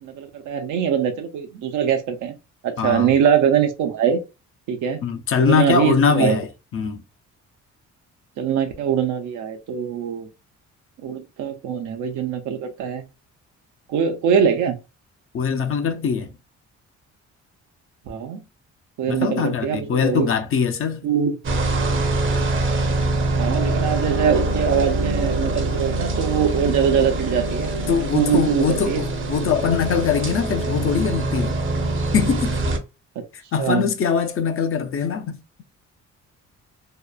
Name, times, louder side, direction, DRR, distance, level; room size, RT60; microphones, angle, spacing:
voice 1, 0.0-2.3 2.6-4.2 4.7-5.0 5.4-6.4 8.4-10.3 11.0-13.1 13.9-14.8 18.1-18.4 19.0-20.3 21.0-21.4 23.4-27.7 28.1-29.0 33.2-33.3 33.6-33.9, right 8 dB, 80° right, 0.6 m, -22 dB
voice 2, 2.8-3.1 5.0-6.5 6.7-7.0 15.3-16.3 19.1-21.1 27.9-31.6 32.1-32.6 33.3-35.4, left 6 dB, 45° left, 0.5 m, -22 dB
sound 1, 21.4-32.8, right 2 dB, 45° right, 0.6 m, -24 dB
2.8 x 2.0 x 2.3 m
cardioid pair, 90°, 30 cm